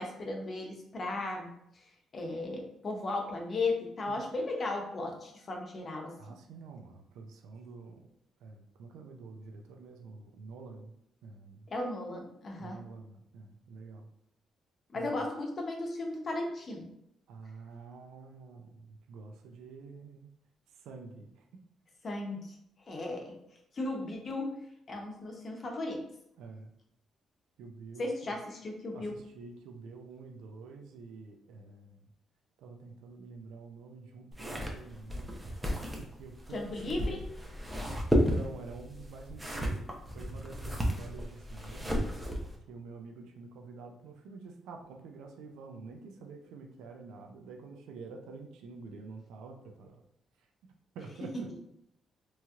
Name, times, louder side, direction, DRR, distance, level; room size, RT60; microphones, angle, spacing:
voice 1, 0.0-1.8 2.1-6.2 11.7-12.8 14.9-16.9 22.0-22.5 22.9-23.4 23.7-24.6 24.9-26.1 28.0-29.1 36.5-37.2, left 2 dB, 45° left, 1 dB, 0.7 m, -36 dB
voice 2, 6.2-8.0 8.4-10.9 11.2-11.7 12.6-14.1 14.9-15.3 17.3-20.3 20.7-21.5 26.4-26.7 27.6-28.4 28.9-32.1 32.6-37.2 38.1-42.0 42.7-50.0 50.4-50.5 50.9-51.5, right 4 dB, 90° right, 3 dB, 0.4 m, -48 dB
sound 1, 34.3-42.6, equal, 10° right, 0.6 m, -33 dB
3.0 x 2.8 x 2.4 m, 0.77 s
cardioid pair, 90°, 0 cm